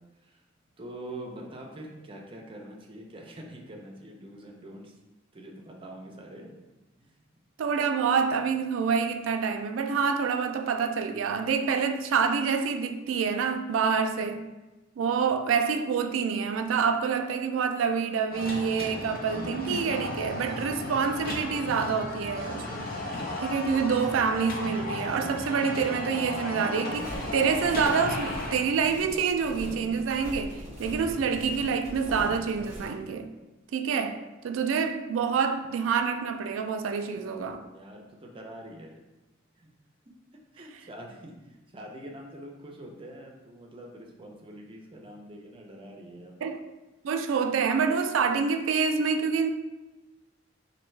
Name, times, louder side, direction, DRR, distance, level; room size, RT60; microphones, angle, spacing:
voice 1, 0.8-4.9 5.3-6.5 7.0-7.1 37.7-39.0 39.6-39.7 40.5-46.4, right 1 dB, 25° right, 0.5 m, -44 dB
voice 2, 7.6-14.5 15.0-22.9 23.4-33.3 33.7-37.6 46.4-46.6 47.0-49.5, right 6 dB, 80° right, 0.3 m, -27 dB
sound 1, 18.3-28.5, left 1 dB, 50° left, 0.7 m, -35 dB
sound 2, 26.9-32.9, equal, 20° left, 1.4 m, -41 dB
4.3 x 2.6 x 3.1 m
head